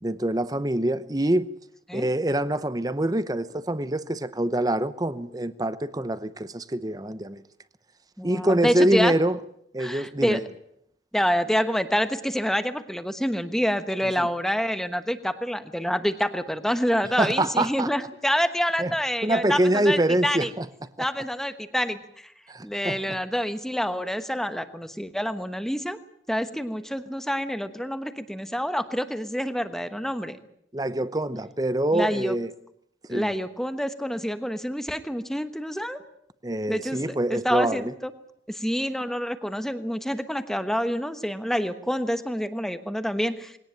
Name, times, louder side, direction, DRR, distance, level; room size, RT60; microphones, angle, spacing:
voice 1, 0.0-1.5 1.9-7.4 8.2-9.4 9.7-10.4 14.0-14.3 17.2-17.9 18.8-18.9 19.2-20.7 21.0-21.1 22.5-23.2 30.7-32.5 33.1-33.3 36.4-37.9, right 1 dB, 20° right, 0.8 m, -25 dB
voice 2, 8.2-9.1 9.8-10.4 11.1-20.5 21.0-22.3 22.6-26.0 26.3-30.4 31.9-32.3 33.1-36.0 36.7-38.1 38.5-43.6, equal, ahead, 1.1 m, -27 dB
21.0 x 18.0 x 8.9 m
head